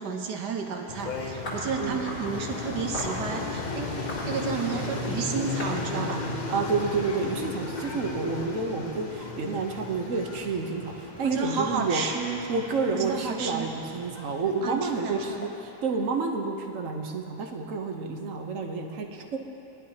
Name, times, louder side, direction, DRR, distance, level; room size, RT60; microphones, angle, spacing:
voice 1, 0.0-6.2 11.2-12.4 12.9-13.7 14.6-15.4, right 5 dB, 80° right, 2 dB, 1.6 m, -31 dB
sound 1, 0.9-15.5, left 3 dB, 40° left, 0.6 m, -36 dB
sound 2, 1.4-2.3 2.9-3.2 3.9-5.0 5.6-5.7 6.0-7.4, equal, 80° left, 3.6 m, -37 dB
sound 3, 4.0-8.5 8.9-14.1 14.4-14.7 15.1-15.2 15.5-15.6, right 2 dB, 30° right, 1.3 m, -41 dB
voice 2, 6.5-12.0 12.5-19.4, right 4 dB, 55° right, 3 dB, 1.2 m, -29 dB
20.5 x 11.0 x 2.9 m, 3.0 s
omnidirectional pair, 1.7 m